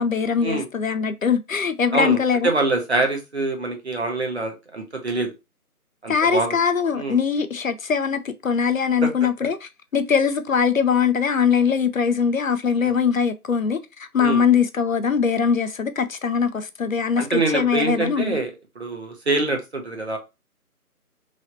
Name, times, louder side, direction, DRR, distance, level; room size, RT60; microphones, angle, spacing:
voice 1, 0.0-2.5 6.1-18.4, left 6 dB, 65° left, 0.5 m, -22 dB
voice 2, 2.4-5.3 6.0-6.6 6.9-7.2 14.2-14.4 17.2-18.5 18.8-20.2, right 2 dB, 45° right, 1.0 m, -24 dB
3.2 x 2.7 x 3.9 m
figure-of-eight pair, 170°, 45 cm